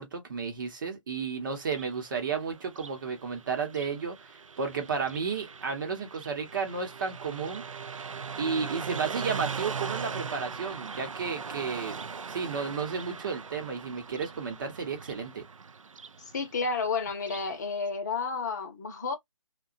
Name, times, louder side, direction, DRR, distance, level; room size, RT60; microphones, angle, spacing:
voice 1, 0.0-8.0 8.4-12.0 12.3-15.4, right 5 dB, 40° right, 0.9 m, -33 dB
Car passing by, 1.6-17.5, right 5 dB, 80° right, 0.4 m, -40 dB
voice 2, 16.3-19.2, left 4 dB, 35° left, 0.7 m, -31 dB
2.7 x 2.3 x 2.5 m
figure-of-eight pair, 150°, 17 cm